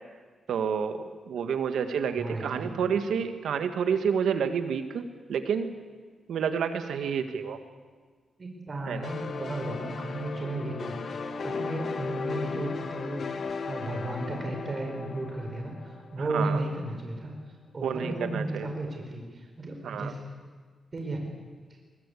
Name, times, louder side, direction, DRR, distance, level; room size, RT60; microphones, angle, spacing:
voice 1, 0.5-5.7 6.3-7.6 8.9-9.1 16.2-16.6 17.8-18.7 19.8-20.1, right 7 dB, 90° right, 9 dB, 1.7 m, -29 dB
voice 2, 2.1-2.7 8.4-17.3 17.7-20.2 20.9-21.3, right 2 dB, 35° right, 2 dB, 4.7 m, -34 dB
sound 1, 9.0-16.5, left 4 dB, 60° left, 1.9 m, -36 dB
22.0 x 20.0 x 8.5 m, 1.5 s
cardioid pair, 110°, 0 cm